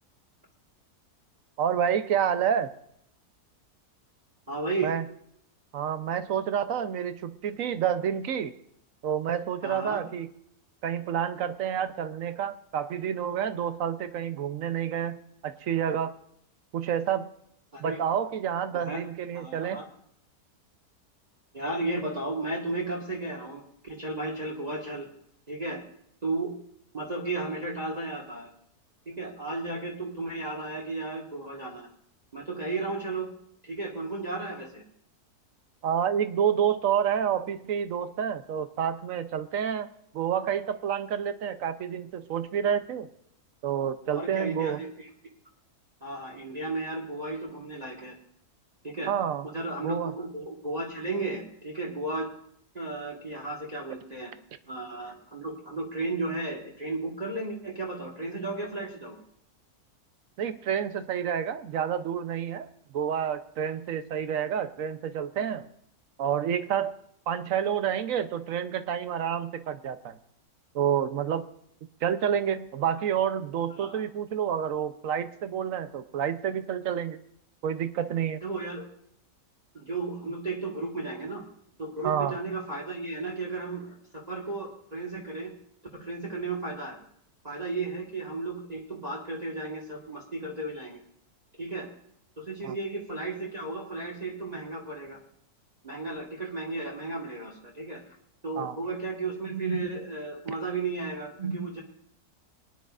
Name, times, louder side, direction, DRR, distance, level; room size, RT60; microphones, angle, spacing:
voice 1, 1.6-2.7 4.8-5.0 5.7-8.5 9.0-10.3 10.8-15.2 15.4-16.1 16.7-17.3 17.8-19.8 35.8-39.9 40.1-43.1 43.6-44.8 49.1-49.4 49.8-50.1 60.4-62.7 62.9-65.7 66.2-66.9 67.3-70.2 70.7-71.4 72.0-77.2 77.6-78.4 82.0-82.4 92.6-92.7 98.6-98.8, right 8 dB, 65° right, 11 dB, 1.0 m, -29 dB
voice 2, 4.5-4.9 9.6-10.0 17.7-18.0 18.7-19.0 19.3-19.9 21.5-25.1 25.5-25.8 26.2-26.5 26.9-28.5 29.0-31.9 32.3-33.3 33.6-34.8 44.1-45.1 46.0-48.2 48.8-49.1 49.4-52.3 52.7-54.3 54.7-59.2 73.7-74.0 78.4-78.8 79.7-81.4 81.8-85.5 85.9-87.0 87.4-91.0 91.6-91.9 92.4-95.2 95.8-98.0 98.4-101.8, right 3 dB, 25° right, -2 dB, 1.5 m, -34 dB
22.5 x 10.5 x 2.4 m, 0.71 s
omnidirectional pair, 1.6 m